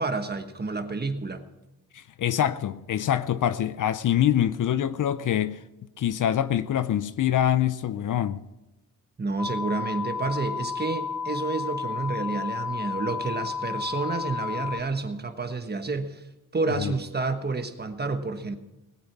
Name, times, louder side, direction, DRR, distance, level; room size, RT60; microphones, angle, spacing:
voice 1, 0.0-1.4 9.2-16.2 16.5-18.6, right 3 dB, 25° right, 1.3 m, -29 dB
voice 2, 1.9-5.6 6.0-8.5 16.8-16.9, left 10 dB, 55° left, 0.6 m, -25 dB
sound 1, 9.4-14.8, left 6 dB, ahead, 0.9 m, -32 dB
19.5 x 8.6 x 6.0 m
cardioid pair, 100°, 37 cm